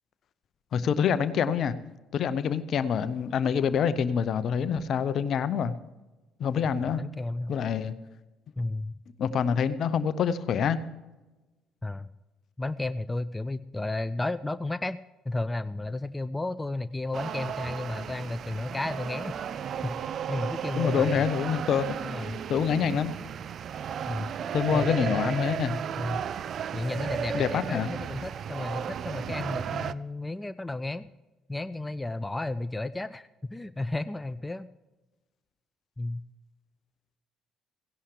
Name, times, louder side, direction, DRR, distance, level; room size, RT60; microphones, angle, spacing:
voice 1, 0.7-1.7 2.1-5.7 6.4-7.0 7.5-7.9 9.2-10.8 20.8-21.9 22.5-23.2 24.5-25.8 27.3-27.9, left 7 dB, 50° left, 15 dB, 0.7 m, -26 dB
voice 2, 6.8-7.5 8.6-8.9 11.8-12.1 12.6-15.0 15.3-19.3 19.8-20.0 20.3-21.3 22.0-22.4 24.1-24.3 24.7-25.5 25.9-26.2 26.7-31.1 31.5-34.7 36.0-36.2, left 2 dB, 15° left, 14 dB, 0.4 m, -33 dB
sound 1, 17.1-29.9, right 8 dB, 50° right, 0.4 m, -34 dB
17.0 x 16.5 x 3.3 m, 1.1 s
figure-of-eight pair, 50°, 0 cm